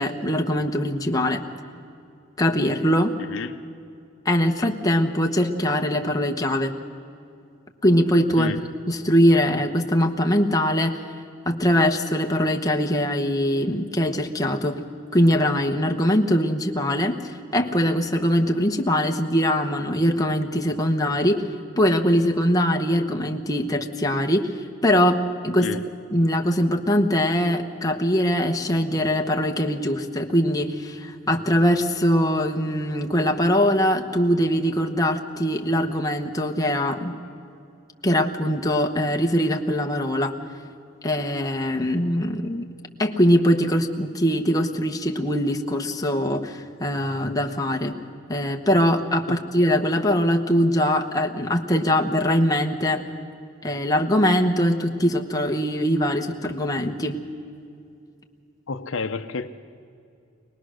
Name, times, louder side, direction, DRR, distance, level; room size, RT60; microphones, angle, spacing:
voice 1, 0.0-1.4 2.4-3.2 4.2-6.7 7.8-8.6 8.9-11.0 11.4-14.8 15.1-21.4 21.8-24.5 24.8-25.7 26.1-37.1 38.0-40.3 41.0-42.7 43.0-47.9 48.3-53.0 53.6-57.2, equal, 15° left, 3 dB, 1.0 m, -22 dB
voice 2, 3.2-3.6 8.4-8.6 25.6-25.8 49.3-49.4 58.7-59.5, left 4 dB, 65° left, 8 dB, 0.7 m, -30 dB
24.0 x 19.0 x 6.4 m, 2.5 s
head